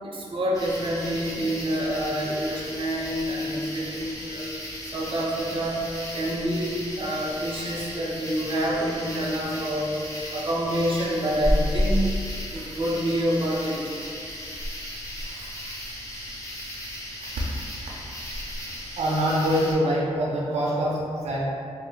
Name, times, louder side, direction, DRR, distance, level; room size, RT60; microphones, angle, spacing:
voice 1, 0.0-4.4 4.9-5.8 6.1-10.0 10.3-12.0 12.5-13.8, equal, 50° right, -4 dB, 0.7 m, -27 dB
sound 1, 0.5-19.7, left 1 dB, 30° left, 0.8 m, -33 dB
voice 2, 15.2-15.8 17.4-17.5 19.0-21.4, equal, 90° right, -5 dB, 0.4 m, -25 dB
3.0 x 2.0 x 3.8 m, 2.4 s
cardioid pair, 85°, 11 cm